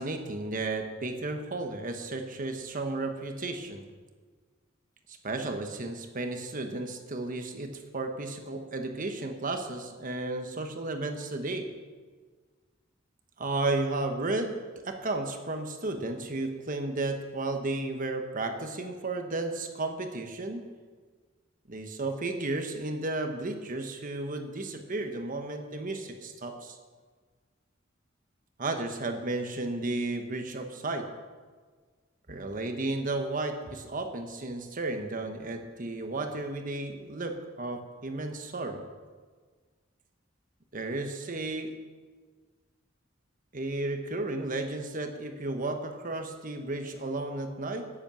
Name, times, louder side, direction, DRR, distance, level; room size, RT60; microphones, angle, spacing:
voice 1, 0.0-3.9 5.1-11.7 13.4-20.6 21.7-26.8 28.6-31.1 32.3-38.8 40.7-41.7 43.5-47.9, right 2 dB, 45° right, 5 dB, 1.1 m, -33 dB
10.5 x 10.0 x 7.1 m, 1.5 s
head